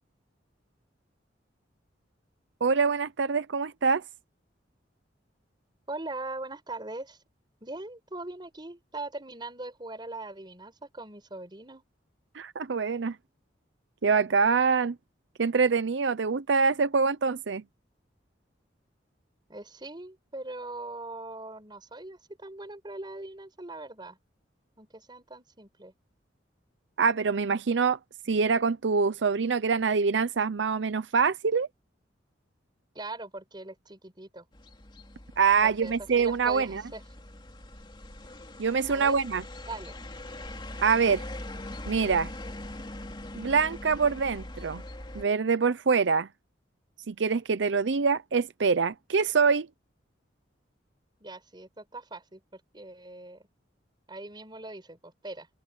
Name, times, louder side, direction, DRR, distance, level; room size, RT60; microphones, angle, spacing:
voice 1, 2.6-4.0 12.3-13.2 14.0-15.0 15.4-17.6 27.0-28.0 28.3-31.7 35.4-36.8 38.6-39.4 40.8-41.2 41.9-42.3 43.3-44.8 45.1-46.3 47.1-49.7, right 5 dB, 80° right, 0.6 m, -25 dB
voice 2, 5.9-7.2 7.6-11.8 19.5-24.2 24.8-25.9 32.9-34.4 35.6-37.0 38.9-39.2 39.7-40.0 51.2-53.4 54.1-55.5, right 2 dB, 25° right, 4.8 m, -41 dB
sound 1, 34.5-45.2, left 1 dB, 25° left, 2.8 m, -42 dB
open air
head